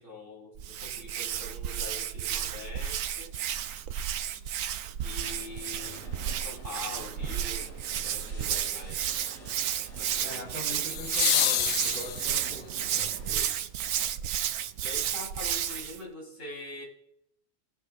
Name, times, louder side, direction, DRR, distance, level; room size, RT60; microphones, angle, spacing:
voice 1, 0.0-3.4 5.0-7.7 8.0-9.3 10.0-10.8 14.4-16.8, left 1 dB, 70° left, -1 dB, 3.5 m, -44 dB
Hands, 0.6-16.0, right 9 dB, 85° right, 1.0 m, -32 dB
sound 1, 5.2-5.3 10.9-12.7 14.9-15.0, left 8 dB, 85° left, 1.1 m, -28 dB
sound 2, 5.2-13.3, equal, 40° left, 3.8 m, -49 dB
voice 2, 10.2-13.5, left 1 dB, 10° left, -7 dB, 3.7 m, -42 dB
21.5 x 8.3 x 2.3 m, 0.74 s
omnidirectional pair, 1.4 m